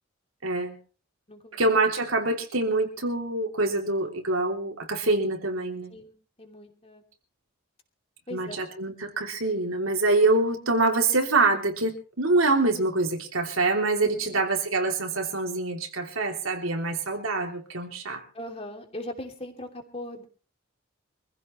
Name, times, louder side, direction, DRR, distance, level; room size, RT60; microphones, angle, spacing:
voice 1, 0.4-0.8 1.5-5.9 8.3-18.2, right 2 dB, 85° right, 3 dB, 3.1 m, -25 dB
voice 2, 5.9-7.0 8.3-8.6 14.0-14.4 18.3-20.2, left 1 dB, 30° left, 4 dB, 2.9 m, -40 dB
25.0 x 15.5 x 3.2 m, 0.37 s
head